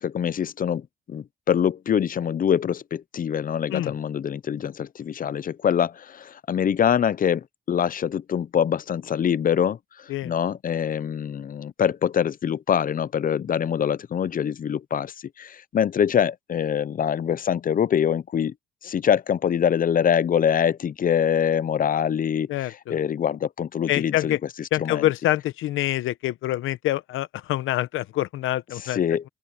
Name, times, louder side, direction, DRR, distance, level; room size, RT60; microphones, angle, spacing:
voice 1, 0.0-18.5 18.8-25.1 28.7-29.3, left 8 dB, 45° left, 0.7 m, -24 dB
voice 2, 22.5-22.9 23.9-24.4 24.7-29.0, left 15 dB, 85° left, 1.0 m, -26 dB
open air
cardioid pair, 90°, 20 cm